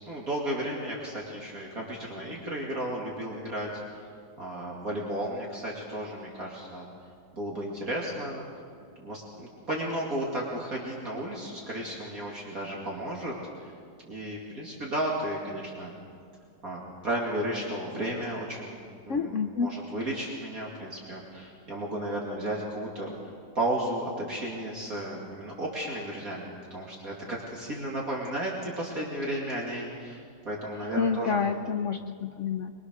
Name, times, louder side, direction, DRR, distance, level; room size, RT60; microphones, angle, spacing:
voice 1, 0.1-4.0 4.4-6.9 7.3-8.4 9.0-13.3 13.6-13.7 14.0-15.9 16.6-31.5, right 1 dB, 50° right, -3 dB, 3.1 m, -34 dB
voice 2, 19.1-19.7 31.0-32.7, left 5 dB, 55° left, 7 dB, 0.8 m, -28 dB
24.0 x 23.5 x 6.5 m, 2.3 s
omnidirectional pair, 2.0 m